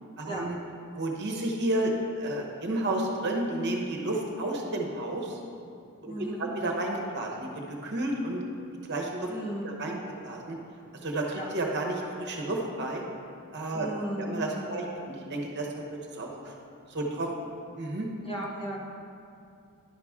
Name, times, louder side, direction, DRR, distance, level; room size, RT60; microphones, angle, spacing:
voice 1, 0.2-0.6 1.0-5.4 6.0-6.1 6.4-8.4 8.9-9.3 9.6-10.6 11.0-13.0 13.5-13.9 14.2-15.8 16.1-16.5 16.9-17.5 17.8-18.1, right 1 dB, 50° right, 0 dB, 1.0 m, -31 dB
voice 2, 6.0-6.5 9.3-9.7 11.3-11.5 13.7-14.9 18.2-18.8, right 1 dB, 25° left, -3 dB, 1.0 m, -36 dB
10.5 x 5.8 x 3.6 m, 2.5 s
head